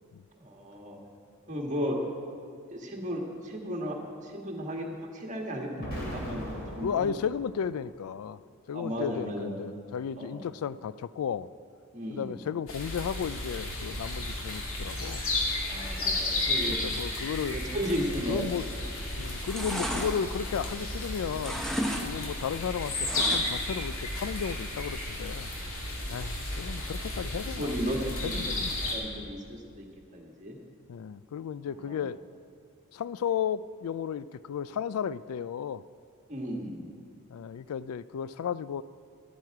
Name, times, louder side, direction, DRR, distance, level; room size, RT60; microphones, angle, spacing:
voice 1, 0.4-1.0 1.5-2.0 2.7-4.0 4.2-7.1 8.7-9.6 10.2-10.4 11.9-12.3 15.6-16.9 17.5-18.5 26.7-26.9 27.5-28.4 28.8-29.9 30.1-30.6 31.8-32.0 36.3-36.9, equal, 35° right, 0 dB, 1.8 m, -35 dB
Explosion, 5.8-7.9, equal, 50° left, 2.9 m, -39 dB
voice 2, 6.8-8.4 8.7-11.5 12.1-15.3 16.7-17.6 18.3-18.7 19.1-21.7 22.0-25.5 26.1-27.8 28.2-28.8 30.9-32.2 32.9-35.8 37.3-38.8, left 7 dB, 90° left, 17 dB, 0.3 m, -34 dB
sound 1, 12.7-29.0, left 2 dB, 70° left, 2.4 m, -33 dB
sound 2, 18.6-19.0 19.3-21.0 21.3-22.1 22.3-23.7 24.1-24.2, equal, ahead, 1.0 m, -34 dB
12.5 x 12.0 x 4.8 m, 2.4 s
head